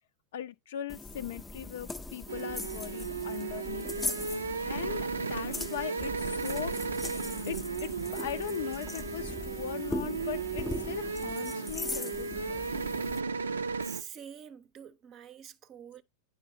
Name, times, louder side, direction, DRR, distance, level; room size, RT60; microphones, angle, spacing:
voice 1, 0.3-6.7 7.5-12.7, left 11 dB, 55° left, 0.5 m, -40 dB
sound 1, 0.9-13.2, left 2 dB, 10° left, 0.6 m, -40 dB
sound 2, 2.3-14.0, right 5 dB, 75° right, 0.5 m, -35 dB
voice 2, 13.8-16.0, right 8 dB, 30° right, 0.7 m, -46 dB
9.7 x 5.1 x 2.6 m
figure-of-eight pair, 90°, 0 cm